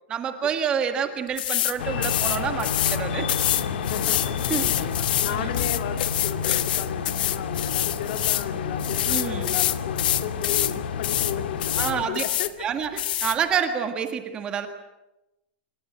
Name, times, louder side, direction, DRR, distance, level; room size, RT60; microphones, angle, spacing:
voice 1, 0.1-3.3 4.5-4.7 5.3-5.5 9.1-9.5 11.8-12.2 12.6-14.7, right 7 dB, 15° right, 7 dB, 1.7 m, -28 dB
sound 1, 1.4-1.7 2.0-3.0 3.3-8.5 8.8-10.7 11.0-11.3 11.6-12.5 13.0-13.4, left 13 dB, 60° left, 1.4 m, -26 dB
sound 2, 1.8-12.1, left 6 dB, 90° left, 2.5 m, -30 dB
voice 2, 3.9-4.3 4.8-12.7, left 9 dB, 45° left, 7 dB, 2.6 m, -34 dB
27.5 x 26.0 x 8.0 m, 0.93 s
supercardioid pair, 180°, 5 cm